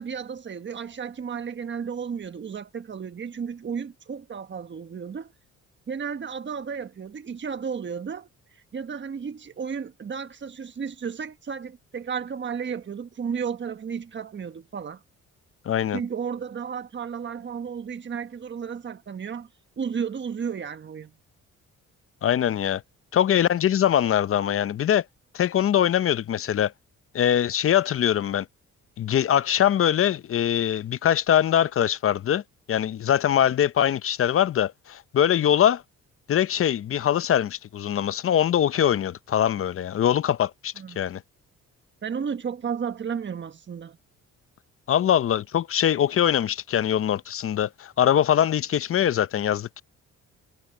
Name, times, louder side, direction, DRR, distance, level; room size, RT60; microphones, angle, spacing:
voice 1, 0.0-5.3 5.9-8.3 8.7-15.0 15.9-19.5 19.8-21.1 40.8-41.1 42.0-44.0, right 6 dB, 40° right, 1.4 m, -33 dB
voice 2, 15.7-16.0 22.2-22.8 23.1-25.0 25.3-26.7 27.1-28.5 29.0-32.4 32.7-35.8 36.3-41.2 44.9-49.8, left 10 dB, 45° left, 0.7 m, -22 dB
cardioid pair, 90°, 30 cm